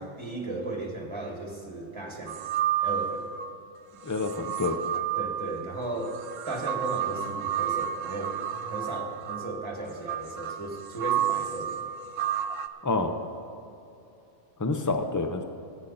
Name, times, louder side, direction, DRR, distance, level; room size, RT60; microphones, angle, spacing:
voice 1, 0.0-2.4 2.8-3.3 5.1-6.2 6.5-11.9, right 2 dB, 20° right, 0 dB, 2.1 m, -35 dB
sound 1, 2.3-3.5 4.1-12.7, right 10 dB, 80° right, 1.0 m, -31 dB
voice 2, 4.0-4.8 12.8-13.1 14.6-15.4, left 3 dB, 15° left, 6 dB, 0.7 m, -27 dB
21.0 x 9.2 x 4.2 m, 2.7 s
omnidirectional pair, 1.3 m